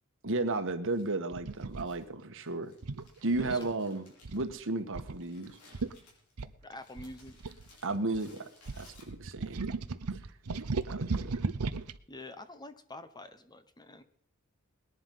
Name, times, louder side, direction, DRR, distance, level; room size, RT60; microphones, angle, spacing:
voice 1, 0.2-2.7 3.2-4.1 4.3-5.6 7.8-8.5 8.8-9.6 10.1-10.2 10.9-11.4, right 2 dB, 60° right, 8 dB, 1.5 m, -33 dB
Crumpling crinkling, 0.9-9.5, left 3 dB, 90° left, 6.1 m, -62 dB
sound 1, 1.3-1.9 2.8-3.7 4.2-4.5 4.9-5.2 5.5-5.6 5.7-5.9 6.4-8.2 8.7-12.0, right 3 dB, 85° right, 0.8 m, -36 dB
voice 2, 3.4-3.7 6.6-7.4 12.1-14.0, left 2 dB, 20° left, 10 dB, 1.0 m, -47 dB
20.0 x 11.0 x 5.6 m, 0.62 s
head